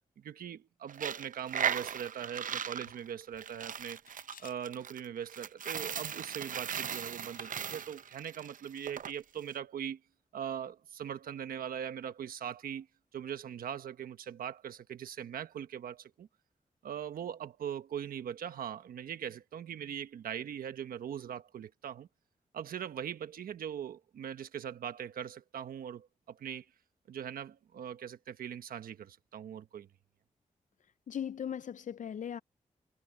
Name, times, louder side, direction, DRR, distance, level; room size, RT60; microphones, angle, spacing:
voice 1, 0.2-4.0 4.4-10.0 10.3-12.9 13.1-16.3 16.8-22.1 22.5-26.7 27.1-29.9, right 9 dB, 85° right, 1.3 m, -41 dB
Coin (dropping), 0.9-9.1, right 8 dB, 70° right, 0.6 m, -38 dB
Camera, 4.1-4.6 6.6-6.8 7.3-7.6 7.9-8.0, left 8 dB, 80° left, 5.3 m, -56 dB
voice 2, 31.1-32.4, left 8 dB, 60° left, 0.5 m, -38 dB
supercardioid pair, 45°, 15 cm